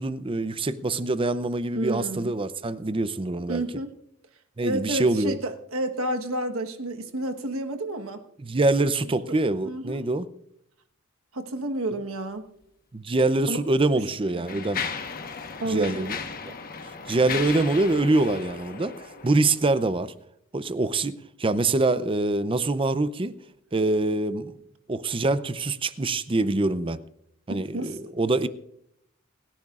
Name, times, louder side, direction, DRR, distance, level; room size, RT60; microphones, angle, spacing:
voice 1, 0.0-3.6 4.6-5.4 8.4-10.3 12.9-14.8 15.7-16.2 16.5-16.6 17.1-20.1 20.5-23.3 23.7-24.6 24.9-27.0 27.5-28.5, right 2 dB, 25° right, 0.6 m, -25 dB
voice 2, 1.7-2.3 3.5-3.9 4.6-8.2 9.6-10.0 11.3-12.5 13.5-13.6 14.0-14.1 14.3-14.5 15.6-16.0 27.5-28.1, right 1 dB, 85° right, 1.3 m, -30 dB
Mechanisms, 13.1-13.2 14.0-19.7, left 5 dB, 45° left, 1.2 m, -36 dB
29.5 x 10.5 x 2.5 m
head